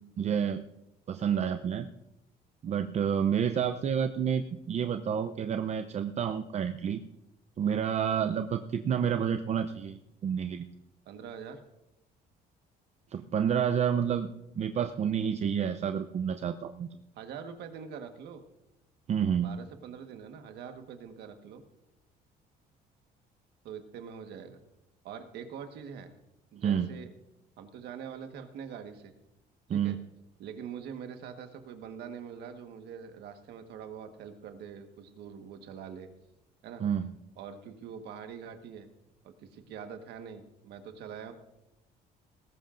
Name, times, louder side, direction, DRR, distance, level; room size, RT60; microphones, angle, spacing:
voice 1, 0.2-0.6 1.1-1.9 2.6-7.0 7.6-10.7 13.1-14.3 14.6-17.0 19.1-19.6 26.6-26.9 29.7-30.0 36.8-37.1, right 8 dB, 40° right, 8 dB, 0.6 m, -29 dB
voice 2, 11.0-11.6 17.1-18.4 19.4-21.6 23.6-24.6 25.0-26.1 26.5-27.1 27.6-29.1 29.7-30.0 30.4-36.1 36.6-36.8 37.4-38.9 39.2-41.3, right 7 dB, 80° right, 6 dB, 1.5 m, -44 dB
19.0 x 16.0 x 2.6 m, 0.90 s
cardioid pair, 110°, 17 cm